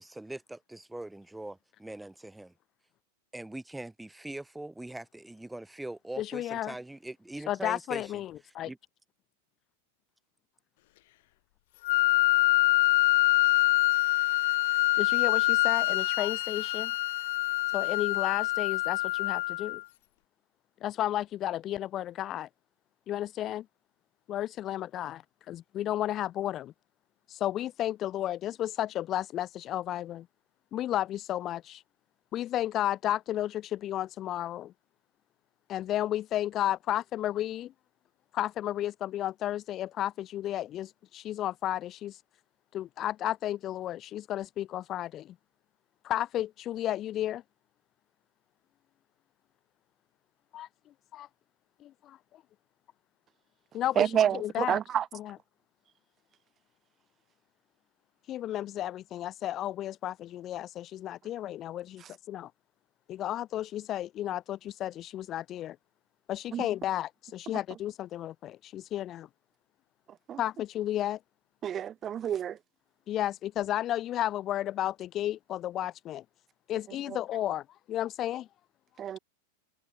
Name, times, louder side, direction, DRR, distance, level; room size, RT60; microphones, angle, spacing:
voice 1, 0.0-2.5 3.3-8.2 8.6-8.8, right 1 dB, 5° right, 2.1 m, -42 dB
voice 2, 6.2-6.7 7.5-8.7 15.0-16.9 17.7-19.8 20.8-22.5 23.1-23.6 24.3-26.7 27.3-30.3 30.7-31.8 32.3-34.7 35.7-37.7 38.3-42.2 42.7-45.3 46.0-47.4 50.5-50.7 51.1-51.3 51.8-52.2 53.7-54.1 54.4-54.8 58.3-62.5 63.1-65.8 66.3-69.3 70.4-71.2 73.1-76.2 76.7-78.5, left 12 dB, 30° left, 1.9 m, -33 dB
Wind instrument woodwind instrument, 11.8-19.8, left 19 dB, 60° left, 1.1 m, -25 dB
voice 3, 54.0-55.1 62.0-62.1 66.5-66.7 70.1-70.4 71.6-72.6 76.9-77.2 79.0-79.2, right 9 dB, 20° right, 2.0 m, -29 dB
supercardioid pair, 150°, 0 cm